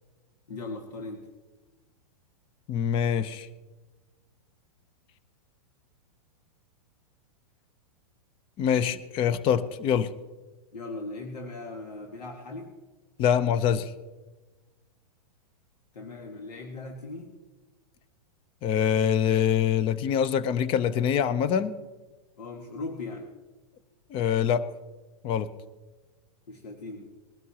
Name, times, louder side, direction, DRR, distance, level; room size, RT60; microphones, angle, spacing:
voice 1, 0.5-1.3 10.7-12.7 15.9-17.3 22.4-23.3 26.5-27.1, left 2 dB, 80° left, 2 dB, 1.8 m, -38 dB
voice 2, 2.7-3.5 8.6-10.1 13.2-13.9 18.6-21.7 24.1-24.7 25.2-25.5, left 8 dB, 25° left, 15 dB, 0.6 m, -24 dB
21.0 x 12.5 x 2.9 m, 1.2 s
hypercardioid pair, 140°, 20 cm